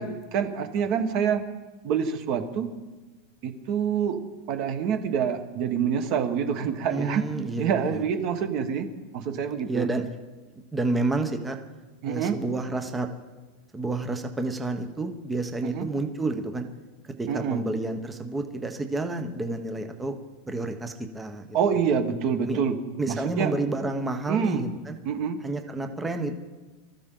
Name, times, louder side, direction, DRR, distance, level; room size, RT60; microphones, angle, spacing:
voice 1, 0.0-1.5 1.8-2.7 3.4-4.2 4.5-7.2 7.6-8.9 9.1-9.9 12.0-12.4 15.6-15.9 17.3-17.6 21.5-22.8 23.1-23.5 24.3-24.6 25.0-25.4, right 7 dB, 35° right, 7 dB, 1.4 m, -26 dB
voice 2, 6.9-8.0 9.7-10.1 10.7-11.6 12.1-13.1 13.7-16.7 17.2-20.2 20.5-21.6 22.5-22.6 23.0-25.0 25.4-26.4, right 2 dB, 5° right, 5 dB, 0.9 m, -30 dB
24.5 x 14.0 x 3.8 m, 1.2 s
supercardioid pair, 180°, 0 cm